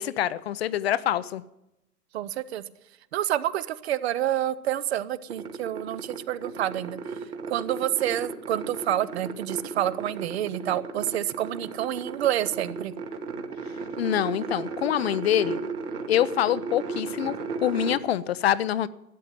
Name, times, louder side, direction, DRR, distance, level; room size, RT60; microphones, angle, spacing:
voice 1, 0.0-1.4 14.0-15.6 16.1-18.9, left 11 dB, 40° left, 0.5 m, -25 dB
voice 2, 2.1-2.6 3.1-7.0 7.5-12.9, right 12 dB, 45° right, 0.7 m, -28 dB
sound 1, 5.3-18.0, right 4 dB, 70° right, 2.4 m, -35 dB
13.0 x 9.5 x 9.2 m
hypercardioid pair, 125°, 48 cm